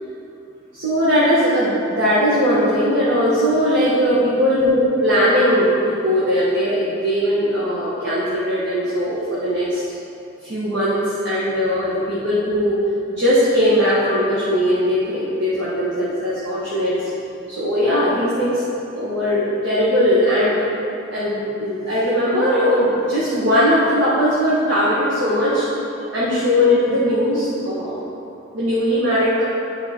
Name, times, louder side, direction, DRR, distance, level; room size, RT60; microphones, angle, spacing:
voice 1, 0.7-9.8 10.4-12.8 13.2-17.1 17.5-18.6 18.9-20.6 21.1-25.7 26.1-28.0 28.5-29.4, equal, 60° right, -8 dB, 1.1 m, -19 dB
9.4 x 3.8 x 4.2 m, 2.8 s
head